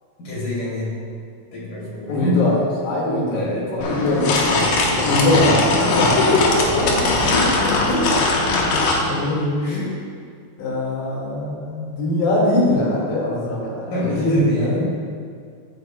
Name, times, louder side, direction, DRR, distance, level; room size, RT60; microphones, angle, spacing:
voice 1, 0.2-0.9 1.5-2.4 3.3-5.9 6.5-7.6 9.6-9.9 13.9-14.8, left 1 dB, 55° left, -6 dB, 3.7 m, -27 dB
voice 2, 2.1-2.6 2.8-3.4 3.7-4.3 5.0-6.5 7.4-8.7 9.0-9.8 10.6-15.0, left 1 dB, 85° left, -4 dB, 4.2 m, -22 dB
sound 1, 3.8-9.0, left 3 dB, 70° left, 2.6 m, -20 dB
15.0 x 8.3 x 2.2 m, 2.2 s
omnidirectional pair, 4.8 m